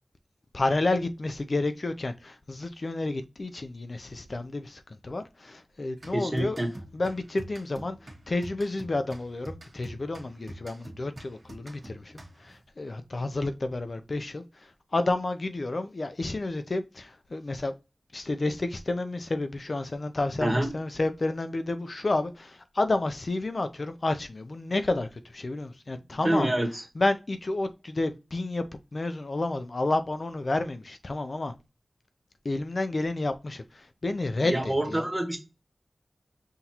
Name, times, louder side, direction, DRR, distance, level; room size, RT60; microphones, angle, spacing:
voice 1, 0.5-6.6 6.9-17.7 18.1-26.5 27.0-28.6 28.9-31.5 32.4-35.1, left 2 dB, 55° left, 0.5 m, -30 dB
sound 1, 6.0-12.6, right 1 dB, 50° right, 1.3 m, -46 dB
voice 2, 6.1-6.7 20.4-20.8 26.2-26.8 34.4-35.4, right 1 dB, 20° right, 1.2 m, -27 dB
5.8 x 2.6 x 2.9 m
wide cardioid pair, 70°, 0 cm